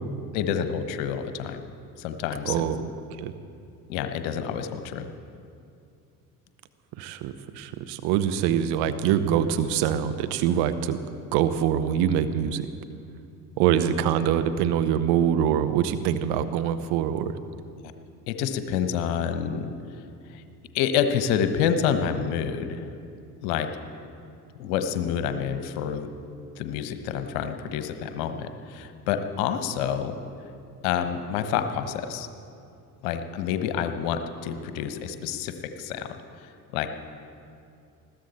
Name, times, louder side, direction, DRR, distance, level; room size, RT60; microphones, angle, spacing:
voice 1, 0.3-1.6 2.0-2.6 3.9-5.1 17.8-17.9 18.3-19.7 20.3-20.4 20.7-22.9 23.4-23.7 24.5-26.1 26.6-30.2 30.8-32.3 33.0-36.9, left 8 dB, 65° left, 9 dB, 1.2 m, -28 dB
voice 2, 2.5-2.9 3.2-3.3 7.0-11.0 11.3-12.7 13.6-17.4, right 9 dB, 60° right, 10 dB, 1.0 m, -24 dB
20.5 x 15.0 x 4.3 m, 2.5 s
figure-of-eight pair, 55°, 44 cm